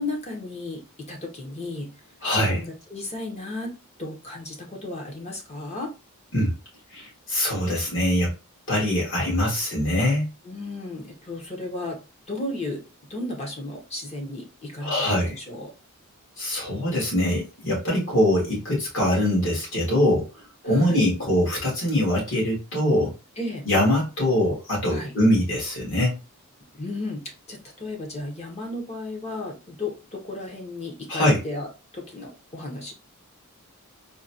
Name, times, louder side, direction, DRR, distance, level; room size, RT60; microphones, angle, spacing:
voice 1, 0.0-1.9 2.3-3.7 4.0-5.9 10.4-12.0 12.3-12.8 13.1-15.7 20.6-21.0 23.4-23.7 24.9-25.1 26.7-27.2 27.5-31.7 31.9-32.9, left 2 dB, 30° left, 1 dB, 0.9 m, -34 dB
voice 2, 2.2-2.6 6.3-6.5 6.9-8.3 8.7-10.3 14.8-15.4 16.4-20.3 20.6-23.1 23.6-26.2 31.1-31.4, left 1 dB, 55° left, -4 dB, 1.9 m, -23 dB
3.8 x 2.3 x 2.7 m, 0.31 s
head